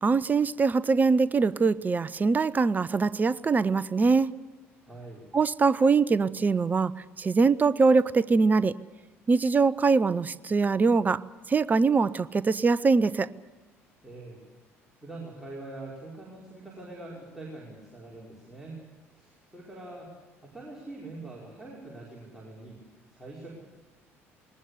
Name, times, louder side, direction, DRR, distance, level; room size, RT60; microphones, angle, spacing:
voice 1, 0.0-4.3 5.3-6.9 7.2-8.8 9.3-13.3, right 4 dB, 25° right, 19 dB, 0.7 m, -23 dB
voice 2, 4.8-5.3 14.0-14.4 15.0-18.8 19.1-20.1 20.4-22.8 23.1-23.5, right 2 dB, 5° right, -4 dB, 5.2 m, -43 dB
21.0 x 19.5 x 8.3 m, 1.2 s
figure-of-eight pair, 55°, 7 cm